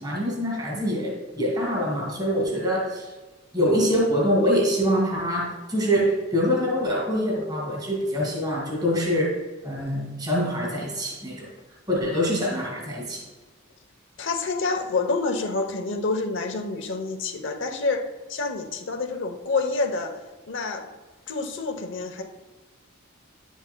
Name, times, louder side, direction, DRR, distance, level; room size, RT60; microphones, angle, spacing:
voice 1, 0.0-3.1 3.5-11.5 11.9-13.2, equal, 20° right, -1 dB, 2.0 m, -25 dB
voice 2, 14.2-20.2 20.5-20.9 21.3-22.2, left 3 dB, 60° left, 6 dB, 0.9 m, -28 dB
9.9 x 7.3 x 2.2 m, 1.3 s
head